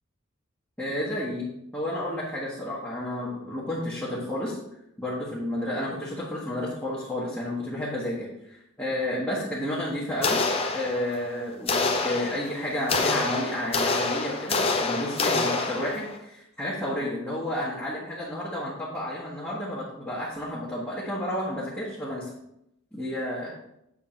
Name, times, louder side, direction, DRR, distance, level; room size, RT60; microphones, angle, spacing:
voice 1, 0.8-4.6 5.0-10.4 10.7-22.3 22.9-23.5, left 1 dB, 10° left, -9 dB, 1.3 m, -31 dB
sound 1, 10.2-11.3 11.7-16.2, left 3 dB, 25° left, 0.6 m, -27 dB
7.4 x 3.7 x 5.1 m, 0.81 s
head